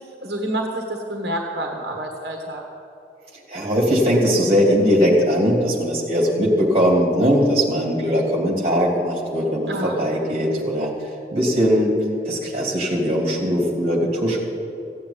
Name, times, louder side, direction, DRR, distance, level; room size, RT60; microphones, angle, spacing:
voice 1, 0.2-2.6 9.7-10.0, right 1 dB, 65° right, 2 dB, 1.3 m, -28 dB
voice 2, 3.5-12.0 12.2-14.4, equal, 35° right, 0 dB, 2.8 m, -20 dB
15.5 x 8.5 x 8.9 m, 2.6 s
head